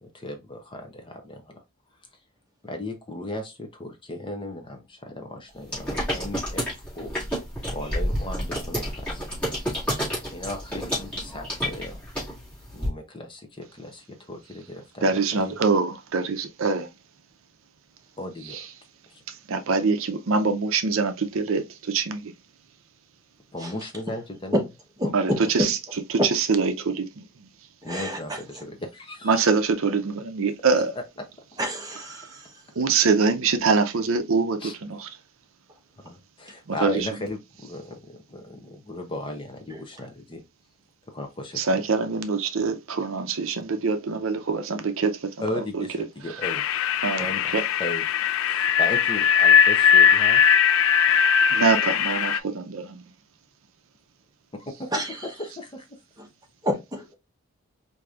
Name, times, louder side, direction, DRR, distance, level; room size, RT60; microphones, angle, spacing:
voice 1, 0.0-1.6 2.6-6.7 6.9-7.1 7.7-9.2 9.7-9.8 10.3-12.0 12.7-15.6 18.2-18.7 19.1-19.2 23.5-24.6 25.3-25.5 27.8-29.4 31.5-31.6 34.6-34.7 36.0-40.4 41.1-41.6 45.4-46.6 47.2-47.5 47.8-48.1 48.5-50.5 54.5-56.0, left 1 dB, 20° left, 0.6 m, -36 dB
sound 1, 5.7-12.9, equal, 5° left, 2.0 m, -30 dB
voice 2, 15.0-16.9 18.5-18.7 19.3-22.3 25.1-25.8 26.1-27.5 29.2-30.9 32.2-32.3 32.8-35.1 36.7-37.1 41.6-45.8 46.3-46.4 47.0-47.6 51.1-53.1, right 4 dB, 70° right, 0.5 m, -24 dB
voice 3, 25.0-25.7 26.2-26.3 27.8-28.4 31.6-32.5 39.7-39.8 54.9-55.2 56.6-57.1, equal, 15° right, 0.9 m, -28 dB
sound 2, 46.4-52.4, left 8 dB, 70° left, 0.3 m, -19 dB
4.6 x 2.6 x 2.3 m
head